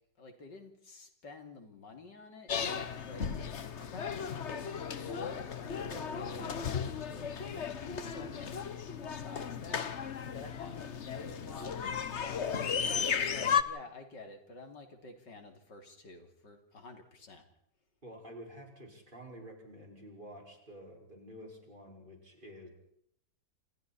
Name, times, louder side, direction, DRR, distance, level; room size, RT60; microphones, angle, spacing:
voice 1, 0.2-3.3 3.8-12.7 13.1-17.5, left 3 dB, 85° left, 5 dB, 3.7 m, -50 dB
sound 1, 2.5-13.6, left 7 dB, 45° left, 1.3 m, -35 dB
voice 2, 18.0-22.7, equal, 30° right, 0 dB, 5.6 m, -50 dB
28.0 x 28.0 x 4.3 m, 0.70 s
omnidirectional pair, 1.9 m